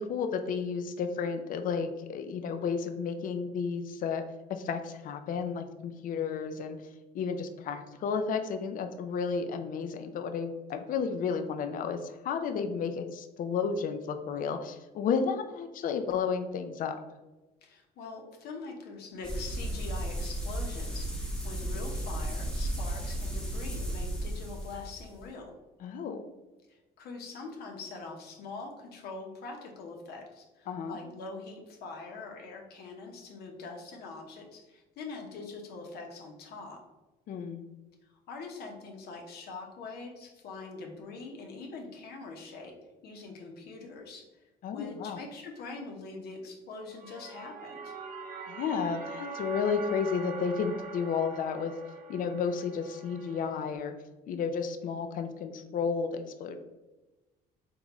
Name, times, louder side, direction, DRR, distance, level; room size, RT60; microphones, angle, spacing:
voice 1, 0.0-4.2 4.5-6.8 7.1-17.0 25.8-26.2 30.7-31.0 37.3-37.6 44.6-45.2 48.5-51.7 52.1-53.9 54.3-56.6, left 6 dB, 55° left, 7 dB, 0.5 m, -32 dB
voice 2, 17.6-25.5 26.7-36.8 38.1-42.7 43.0-44.3 44.7-48.0, left 3 dB, 70° left, 1 dB, 0.9 m, -43 dB
sound 1, 19.2-25.2, right 1 dB, 5° left, 0.9 m, -34 dB
sound 2, 46.8-53.8, right 4 dB, 55° right, 0.7 m, -43 dB
3.8 x 3.7 x 3.0 m, 1.1 s
cardioid pair, 110°, 17 cm